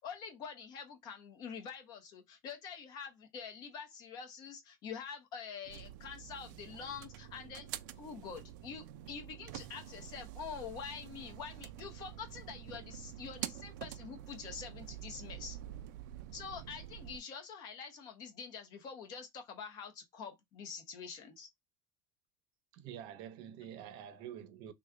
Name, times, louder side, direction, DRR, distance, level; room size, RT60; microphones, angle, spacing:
voice 1, 0.0-7.7 8.0-15.6 16.3-21.5, left 6 dB, 45° left, 1.0 m, -46 dB
sound 1, 5.6-17.2, right 12 dB, 85° right, 0.4 m, -47 dB
voice 2, 22.7-24.7, right 10 dB, 55° right, 0.7 m, -47 dB
3.1 x 2.3 x 3.7 m
cardioid pair, 160°, 10 cm